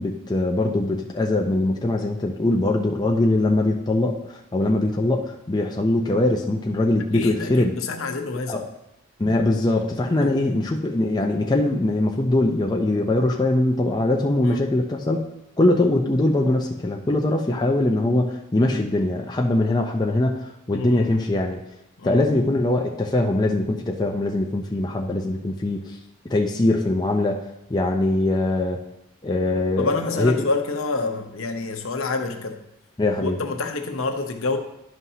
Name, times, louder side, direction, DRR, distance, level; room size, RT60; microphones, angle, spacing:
voice 1, 0.0-7.7 8.5-8.6 9.2-15.2 15.6-21.6 22.0-25.8 26.3-27.4 27.7-28.8 29.2-30.3 33.0-33.4, left 2 dB, 20° left, 1 dB, 0.5 m, -22 dB
voice 2, 7.1-8.6 10.2-10.3 14.4-14.6 17.9-18.0 20.7-21.1 22.0-22.2 29.8-32.6 33.1-34.6, left 3 dB, 70° left, 4 dB, 0.8 m, -27 dB
11.0 x 5.6 x 2.8 m, 0.85 s
head